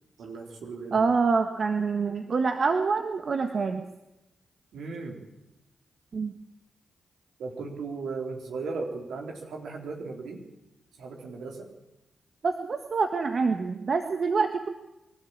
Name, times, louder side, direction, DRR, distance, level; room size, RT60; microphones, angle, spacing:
voice 1, 0.2-1.0 4.7-5.2 7.4-10.4 11.0-11.7, right 4 dB, 80° right, 2 dB, 3.6 m, -36 dB
voice 2, 0.9-3.8 6.1-6.3 12.4-14.7, right 4 dB, 60° right, 7 dB, 1.4 m, -26 dB
23.5 x 13.0 x 8.7 m, 0.97 s
supercardioid pair, 45°, 0 cm